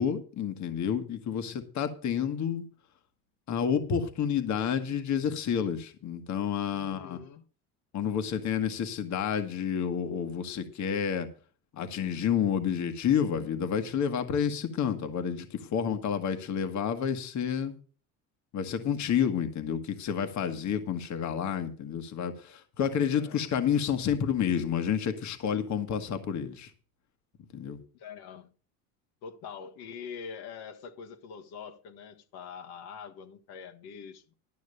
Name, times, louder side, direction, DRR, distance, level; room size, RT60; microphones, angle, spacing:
voice 1, 0.0-2.7 3.5-7.2 7.9-11.3 11.7-17.7 18.5-26.7 27.5-27.8, left 8 dB, 45° left, 1.5 m, -29 dB
voice 2, 6.7-7.4 23.1-23.4 27.9-28.5 29.2-34.3, left 6 dB, 65° left, 1.6 m, -44 dB
12.0 x 6.3 x 6.6 m
supercardioid pair, 115°, 41 cm